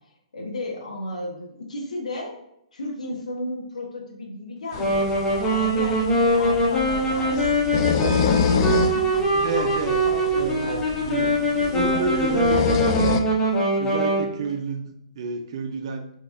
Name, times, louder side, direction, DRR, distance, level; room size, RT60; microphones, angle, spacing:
voice 1, 0.3-2.4 2.7-7.5 8.1-10.8 11.6-12.1 12.5-12.9, left 2 dB, 80° left, 0 dB, 1.0 m, -34 dB
sound 1, 4.7-13.2, left 6 dB, 40° left, 0.4 m, -27 dB
Wind instrument woodwind instrument, 4.8-14.3, right 1 dB, 15° left, 0.8 m, -22 dB
voice 2, 9.4-10.0 10.3-11.4 11.7-12.9 13.8-16.1, right 5 dB, 50° right, 5 dB, 0.5 m, -29 dB
3.8 x 2.8 x 2.5 m, 0.77 s
hypercardioid pair, 130°, 4 cm